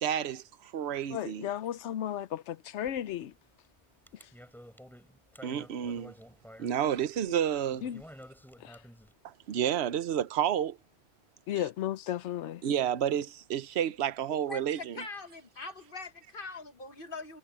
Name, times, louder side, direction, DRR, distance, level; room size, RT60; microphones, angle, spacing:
voice 1, 0.0-1.5 5.4-6.1 6.6-7.8 9.2-10.8 12.6-15.0, right 9 dB, 70° right, 1.0 m, -30 dB
voice 2, 1.1-3.3 4.2-4.3 7.8-8.0 8.6-8.8 11.5-12.6, left 11 dB, 85° left, 1.0 m, -34 dB
sound 1, 2.9-3.4 3.6-9.1, equal, ahead, 2.9 m, -51 dB
voice 3, 14.5-17.4, left 3 dB, 50° left, 1.3 m, -42 dB
omnidirectional pair, 1.2 m